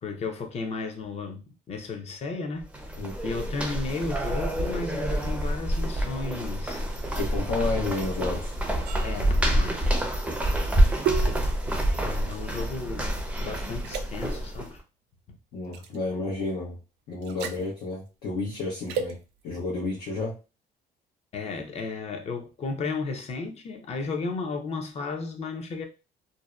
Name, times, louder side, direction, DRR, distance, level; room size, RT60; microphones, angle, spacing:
voice 1, 0.0-2.7 3.2-6.8 9.0-9.9 10.5-10.6 11.9-14.8 21.3-25.9, left 4 dB, 40° left, 0.6 m, -34 dB
sound 1, 2.6-14.7, right 1 dB, 5° right, 0.5 m, -27 dB
voice 2, 7.1-8.6 15.5-16.8 17.1-19.2 19.4-20.4, left 3 dB, 80° left, 0.8 m, -31 dB
sound 2, 8.8-13.4 13.8-14.0 15.7-16.0 17.2-17.6 18.9-19.1, right 8 dB, 85° right, 0.4 m, -34 dB
2.6 x 2.0 x 2.3 m
cardioid pair, 110°, 17 cm